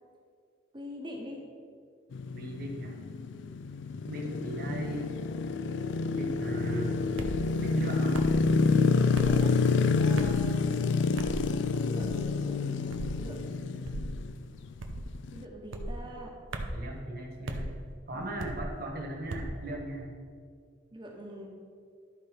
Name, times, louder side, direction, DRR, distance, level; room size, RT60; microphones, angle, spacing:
voice 1, 0.7-1.4 3.3-3.6 8.9-9.6 10.0-11.0 11.8-14.0 15.3-16.4 18.1-18.3 20.9-21.5, equal, 25° right, 0 dB, 1.1 m, -44 dB
sound 1, 2.1-15.4, left 4 dB, 65° left, 0.3 m, -28 dB
voice 2, 2.3-2.9 4.1-5.1 6.1-7.0 7.6-8.2 16.7-17.7 18.1-20.1, right 1 dB, 50° right, -1 dB, 1.5 m, -37 dB
sound 2, 7.2-7.4 8.1-8.4 9.1-9.4 10.2-10.5 11.2-11.4 12.0-12.3 12.9-13.2 13.8-14.1 14.8-15.1 15.7-16.0 16.5-16.8 17.5-17.7 18.4-18.7 19.3-19.6, right 1 dB, 80° right, 0.7 m, -36 dB
12.0 x 4.2 x 5.0 m, 2.2 s
head